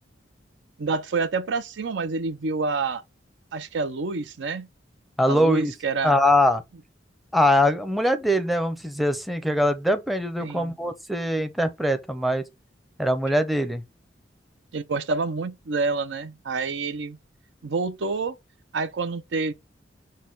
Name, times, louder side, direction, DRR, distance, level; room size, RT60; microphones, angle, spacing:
voice 1, 0.8-3.0 3.5-4.7 5.3-6.2 10.4-10.7 14.7-17.2 17.6-18.4 18.7-19.5, right 4 dB, 70° right, 0.6 m, -28 dB
voice 2, 5.2-5.7 6.0-6.6 7.3-12.4 13.0-13.8, left 1 dB, ahead, 0.6 m, -22 dB
6.4 x 2.2 x 3.8 m
head